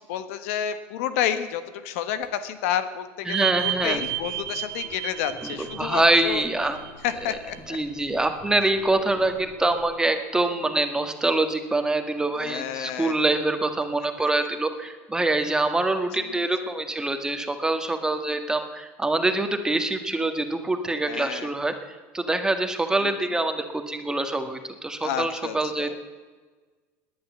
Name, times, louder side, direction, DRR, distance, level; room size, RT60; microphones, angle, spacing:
voice 1, 0.1-6.4 7.0-7.8 12.4-13.1 16.2-16.5 21.1-21.5 23.0-23.3 25.0-26.0, left 10 dB, 80° left, 11 dB, 1.3 m, -30 dB
voice 2, 3.2-4.0 5.4-5.5 5.8-6.8 7.3-7.4 7.7-21.7 22.1-26.0, right 2 dB, 10° right, 7 dB, 1.7 m, -25 dB
sound 1, 3.3-7.4 7.8-7.9 10.7-10.8, right 15 dB, 75° right, 1.0 m, -32 dB
sound 2, 3.5-9.9, left 1 dB, 60° left, 7.1 m, -47 dB
18.5 x 10.0 x 7.4 m, 1.4 s
supercardioid pair, 110°, 7 cm